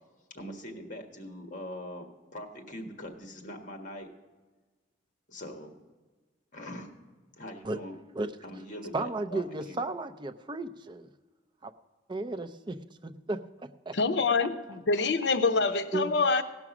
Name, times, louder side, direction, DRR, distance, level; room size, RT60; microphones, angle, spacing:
voice 1, 0.3-4.1 5.3-5.7 6.5-6.9 7.4-8.0 8.4-9.8, left 1 dB, 45° left, 4 dB, 1.6 m, -42 dB
voice 2, 8.9-11.1 11.6-11.7 12.1-12.8 13.0-13.4 13.9-14.5 15.9-16.1, right 2 dB, 25° right, 10 dB, 0.5 m, -34 dB
voice 3, 13.9-16.4, left 4 dB, 70° left, 10 dB, 0.7 m, -26 dB
17.0 x 6.1 x 6.0 m, 1.3 s
head